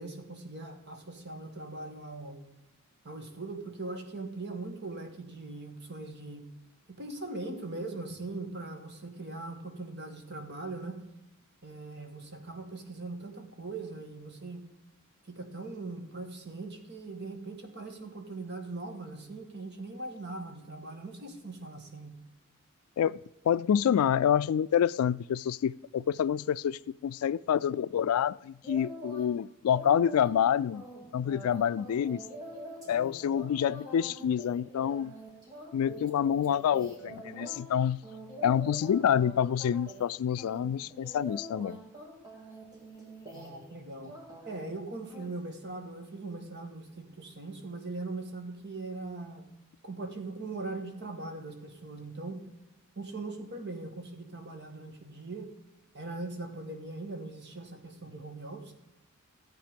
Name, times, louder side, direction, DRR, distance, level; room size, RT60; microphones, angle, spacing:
voice 1, 0.0-2.4 3.0-6.5 6.9-11.0 11.6-14.6 15.2-22.1 43.3-44.2 44.5-49.4 49.8-52.4 53.0-55.5 55.9-58.7, right 3 dB, 55° right, 1.7 m, -40 dB
voice 2, 23.4-30.8 31.1-32.2 32.9-35.1 35.7-38.0 38.4-41.8, left 9 dB, 80° left, 0.3 m, -27 dB
sound 1, 28.6-29.3 29.7-37.6 38.0-39.3 39.6-40.1 40.4-43.7 44.0-44.7 45.1-45.3, right 1 dB, 15° right, 2.9 m, -45 dB
14.5 x 8.2 x 5.2 m
head